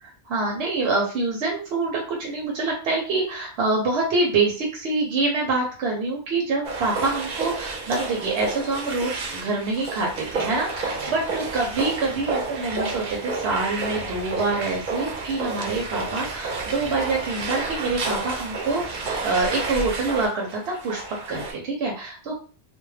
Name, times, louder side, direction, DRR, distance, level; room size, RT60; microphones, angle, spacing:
voice 1, 0.0-21.0 21.3-22.3, right 3 dB, 85° right, -1 dB, 0.9 m, -26 dB
sound 1, 6.6-21.5, right 3 dB, 55° right, 0.6 m, -30 dB
2.2 x 2.1 x 3.1 m, 0.39 s
omnidirectional pair, 1.1 m